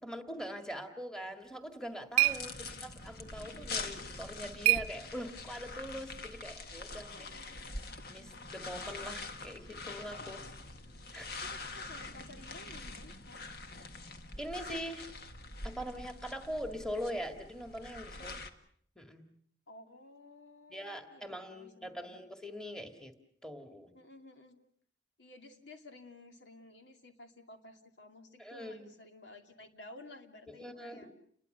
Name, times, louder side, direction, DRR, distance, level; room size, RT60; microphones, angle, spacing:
voice 1, 0.0-2.5 2.8-7.3 8.1-10.4 11.1-11.3 14.4-15.1 15.6-18.4 19.0-19.3 20.7-23.1 23.4-23.9 28.4-28.9 30.6-31.1, equal, 5° left, 6 dB, 2.0 m, -42 dB
sound 1, 1.4-5.6, right 17 dB, 35° right, 1.0 m, -34 dB
sound 2, 2.2-18.5, left 3 dB, 60° left, 1.7 m, -44 dB
voice 2, 2.3-2.8 7.1-7.8 10.2-10.5 11.4-13.4 18.1-18.5 19.7-22.2 23.9-24.6 25.2-31.1, left 2 dB, 75° left, 5 dB, 2.6 m, -54 dB
29.5 x 22.0 x 6.7 m, 0.62 s
head